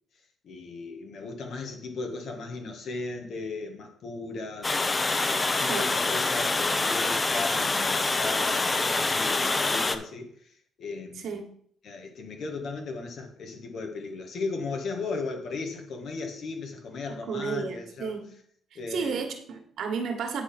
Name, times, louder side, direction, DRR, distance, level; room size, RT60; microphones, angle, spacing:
voice 1, 0.4-4.8 5.3-10.5 10.8-11.3 11.8-18.2 18.8-19.3, left 3 dB, 65° left, 3 dB, 1.8 m, -36 dB
Water, 4.6-10.0, left 3 dB, 25° left, 0.7 m, -26 dB
voice 2, 17.3-18.3 18.9-20.4, right 5 dB, 70° right, 4 dB, 1.6 m, -32 dB
9.4 x 3.9 x 5.9 m, 0.62 s
cardioid pair, 90°, 0 cm